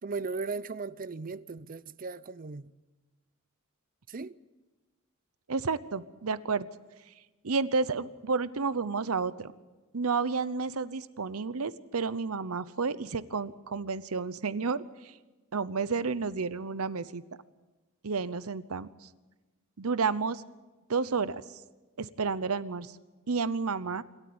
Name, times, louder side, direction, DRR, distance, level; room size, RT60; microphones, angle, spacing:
voice 1, 0.0-2.7 4.1-4.4, right 4 dB, 40° right, 0.6 m, -37 dB
voice 2, 5.5-6.7 7.4-9.5 9.9-15.1 15.5-17.2 18.0-19.1 19.8-20.4 20.9-21.4 22.0-23.0 23.3-24.0, right 4 dB, 85° right, 0.8 m, -31 dB
27.0 x 13.5 x 8.8 m
head